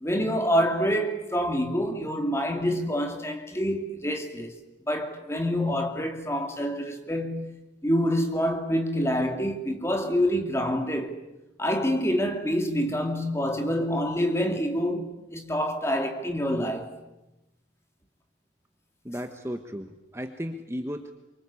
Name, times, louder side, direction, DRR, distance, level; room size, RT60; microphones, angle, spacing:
voice 1, 0.0-4.6 4.9-11.2 11.6-17.0, equal, 15° left, 2.6 m, -27 dB
voice 2, 19.0-21.1, equal, 15° right, 1.3 m, -35 dB
27.5 x 24.5 x 8.6 m
head